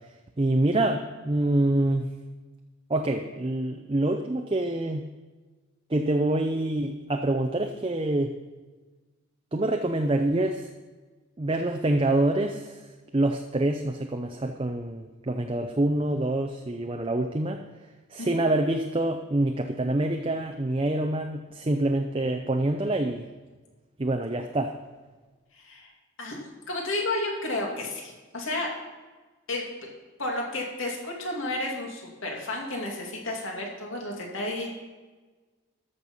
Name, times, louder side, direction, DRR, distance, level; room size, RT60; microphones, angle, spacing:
voice 1, 0.4-2.0 2.9-5.0 5.9-8.3 9.5-10.7 11.4-12.8 13.1-17.6 18.1-23.3 24.0-24.7, right 1 dB, 25° right, 4 dB, 0.5 m, -26 dB
voice 2, 25.5-25.9 26.2-26.4 26.7-28.7 29.5-29.7 30.2-34.7, left 2 dB, 70° left, -1 dB, 2.5 m, -32 dB
13.5 x 6.7 x 5.5 m, 1.3 s
head